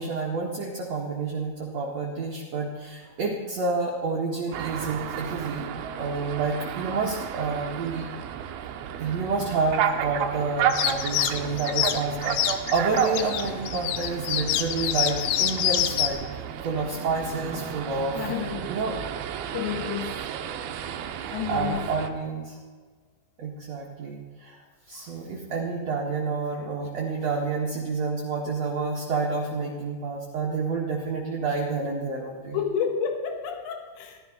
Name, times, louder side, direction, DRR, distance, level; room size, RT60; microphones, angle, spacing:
voice 1, 0.0-8.1 9.0-18.2 18.7-19.0 21.5-22.6 23.4-24.6 24.9-32.6, right 4 dB, 60° right, -2 dB, 1.8 m, -29 dB
sound 1, 4.5-22.1, right 9 dB, 75° right, 2.3 m, -32 dB
sound 2, 10.7-16.1, left 12 dB, 90° left, 3.3 m, -26 dB
voice 2, 18.1-18.7 19.5-20.3 21.3-21.9 32.5-34.2, left 8 dB, 70° left, 5 dB, 3.7 m, -30 dB
16.5 x 12.5 x 5.5 m, 1.4 s
omnidirectional pair, 5.5 m